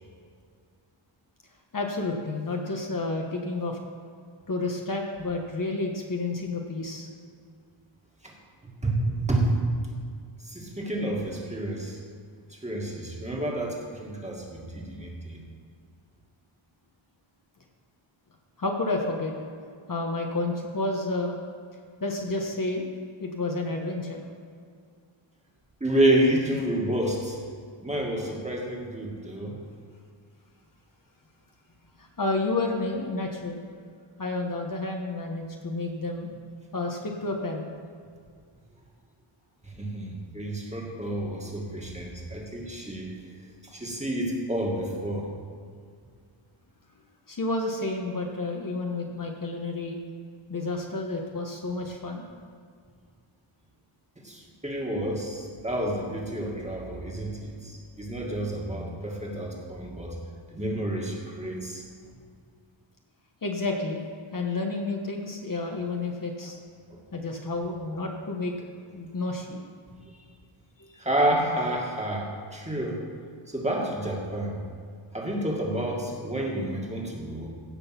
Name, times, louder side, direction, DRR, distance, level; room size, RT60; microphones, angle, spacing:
voice 1, 1.7-3.8 4.5-7.1 18.6-19.3 19.9-21.4 22.0-22.8 23.2-24.2 32.0-33.6 34.2-36.3 36.7-37.7 47.3-50.0 50.5-52.3 63.4-64.0 64.3-66.6 67.1-68.5 68.9-69.6, left 2 dB, 40° left, 1 dB, 1.2 m, -30 dB
voice 2, 8.6-9.5 10.4-12.0 12.5-15.4 25.8-27.4 27.8-29.6 39.6-43.1 43.6-45.3 54.2-60.2 60.5-61.9 65.7-65.8 66.9-67.0 70.2-70.3 71.0-73.0 73.5-74.6 75.1-77.5, right 1 dB, 15° right, -2 dB, 2.0 m, -29 dB
16.5 x 6.3 x 5.9 m, 2.1 s
wide cardioid pair, 135°, 50 cm